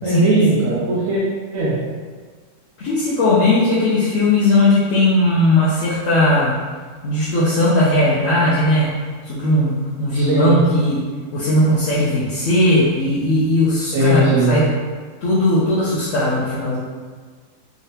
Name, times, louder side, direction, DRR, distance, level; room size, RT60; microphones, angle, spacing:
voice 1, 0.0-1.2 1.5-1.8 10.1-10.6 13.8-14.6, right 2 dB, 70° right, -7 dB, 1.0 m, -18 dB
voice 2, 2.8-6.5 7.0-8.9 9.2-11.0 11.3-14.7 15.2-16.8, left 1 dB, 65° left, -8 dB, 1.0 m, -17 dB
3.6 x 3.4 x 2.8 m, 1.5 s
omnidirectional pair, 1.6 m